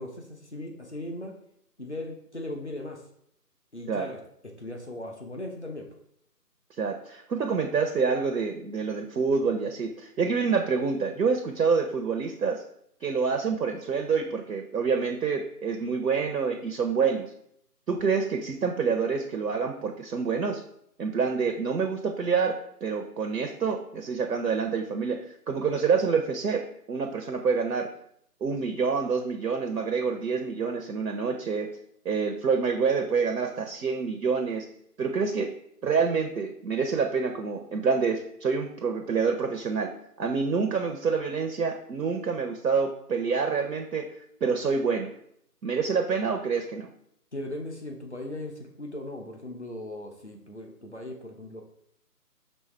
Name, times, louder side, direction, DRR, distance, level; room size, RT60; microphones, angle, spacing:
voice 1, 0.0-1.3 1.8-3.0 3.7-5.9 47.3-51.6, left 1 dB, 45° left, 1 dB, 0.6 m, -38 dB
voice 2, 6.8-12.6 13.0-17.2 17.9-20.6 21.0-27.9 28.4-31.7 32.0-34.7 35.0-35.5 35.8-39.9 40.2-44.1 44.4-45.1 45.6-46.9, right 5 dB, 80° right, 4 dB, 0.7 m, -27 dB
5.4 x 3.0 x 3.2 m, 0.71 s
figure-of-eight pair, 165°, 48 cm